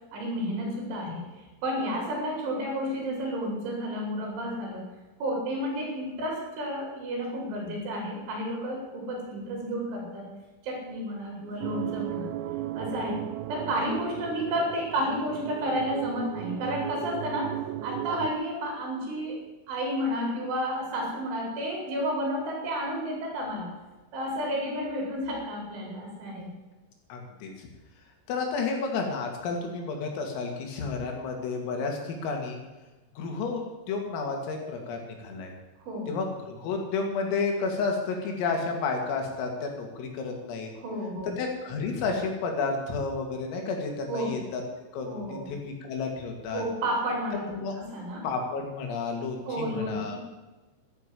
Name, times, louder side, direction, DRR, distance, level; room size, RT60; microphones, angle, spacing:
voice 1, 0.1-1.2 1.6-4.8 5.2-10.3 10.6-12.3 12.7-13.2 13.5-17.5 17.8-19.4 19.7-23.7 24.1-26.5 35.9-36.1 40.8-41.3 44.1-44.3 45.1-45.5 46.5-48.3 49.5-50.2, equal, 70° right, -1 dB, 7.2 m, -31 dB
sound 1, 11.6-18.3, right 13 dB, 90° right, 3.5 m, -35 dB
voice 2, 27.1-27.7 28.3-32.6 33.2-33.6 33.9-35.5 36.1-40.7 41.4-44.6 44.9-46.6 47.5-47.7 48.2-50.2, left 4 dB, 85° left, 2 dB, 5.2 m, -31 dB
12.5 x 12.0 x 8.6 m, 1.2 s
omnidirectional pair, 5.8 m